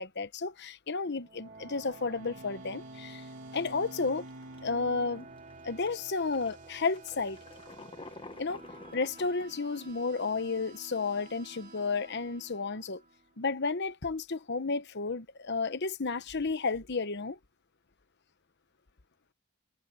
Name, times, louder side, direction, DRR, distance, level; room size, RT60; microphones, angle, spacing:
voice 1, 0.0-3.2 3.5-4.3 4.6-5.3 5.6-7.4 8.4-8.6 8.9-13.0 13.4-17.4, left 4 dB, 50° left, 1.0 m, -32 dB
sound 1, 1.0-13.4, right 3 dB, 35° right, 3.8 m, -52 dB
Bowed string instrument, 1.4-6.9, right 1 dB, 60° right, 5.4 m, -50 dB
sound 2, 3.6-3.8 4.3-4.8 5.4-5.5 5.9-9.9, left 2 dB, 25° left, 1.2 m, -49 dB
head